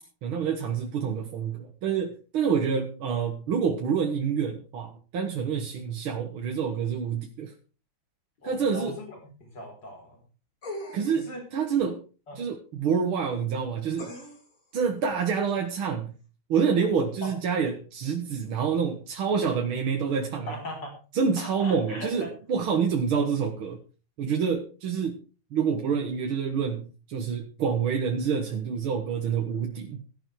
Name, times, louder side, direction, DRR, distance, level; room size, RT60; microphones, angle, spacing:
voice 1, 0.2-7.5 8.4-9.0 10.9-12.0 12.3-14.1 14.7-16.1 16.5-20.6 21.1-23.8 24.2-25.2 25.5-30.0, right 6 dB, 85° right, 3 dB, 2.3 m, -27 dB
voice 2, 8.4-10.2 11.1-11.4 12.3-12.4 17.2-17.3 20.5-20.9 21.4-22.3, left 1 dB, 55° left, 2 dB, 5.5 m, -39 dB
sound 1, 10.6-11.3 14.0-14.6 15.5-15.6, left 1 dB, 40° left, 3.7 m, -39 dB
15.0 x 10.5 x 4.8 m, 0.35 s
omnidirectional pair, 2.2 m